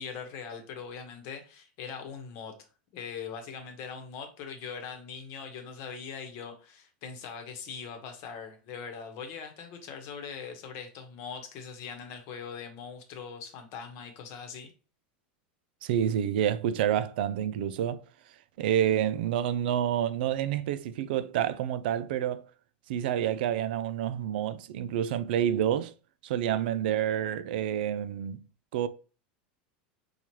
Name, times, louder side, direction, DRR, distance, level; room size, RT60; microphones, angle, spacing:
voice 1, 0.0-2.5 2.9-14.7, left 6 dB, 55° left, 1.0 m, -41 dB
voice 2, 15.8-18.0 18.6-22.5 22.9-25.9 26.2-28.4 28.7-28.9, right 10 dB, 75° right, 0.3 m, -28 dB
4.4 x 2.4 x 2.9 m
supercardioid pair, 120°, 5 cm